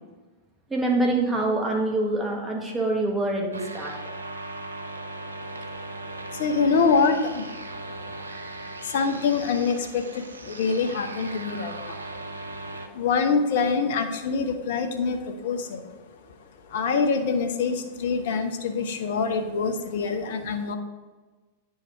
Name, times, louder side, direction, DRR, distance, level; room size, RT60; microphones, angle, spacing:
voice 1, 0.7-3.9, right 2 dB, 15° right, -1 dB, 1.7 m, -25 dB
sound 1, 3.5-12.9, right 2 dB, 85° right, 0.6 m, -38 dB
voice 2, 6.3-7.6 8.8-12.0 12.5-15.9 16.6-20.8, left 5 dB, 60° left, 7 dB, 0.8 m, -25 dB
9.0 x 4.8 x 4.5 m, 1.3 s
figure-of-eight pair, 95°, 0 cm